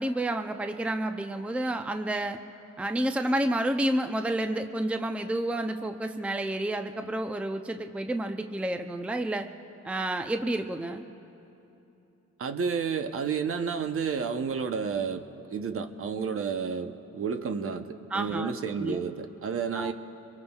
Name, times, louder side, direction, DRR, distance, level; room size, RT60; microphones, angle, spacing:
voice 1, 0.0-2.4 2.8-9.5 9.8-11.0 18.1-19.0 19.7-19.9, right 1 dB, 5° right, 6 dB, 0.6 m, -30 dB
voice 2, 12.4-19.9, right 6 dB, 45° right, 8 dB, 0.9 m, -31 dB
24.5 x 22.5 x 2.4 m, 2.9 s
cardioid pair, 90°, 30 cm